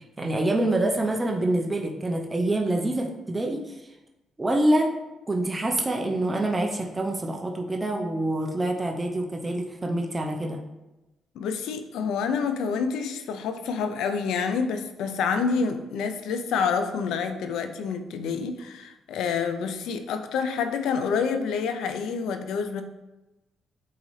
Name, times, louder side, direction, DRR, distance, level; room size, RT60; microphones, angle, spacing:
voice 1, 0.2-3.8 4.4-4.9 5.3-10.6, right 1 dB, 20° right, 2 dB, 0.8 m, -26 dB
voice 2, 11.3-22.8, left 5 dB, 85° left, 7 dB, 0.6 m, -28 dB
8.5 x 4.0 x 3.3 m, 1.0 s
cardioid pair, 90°, 0 cm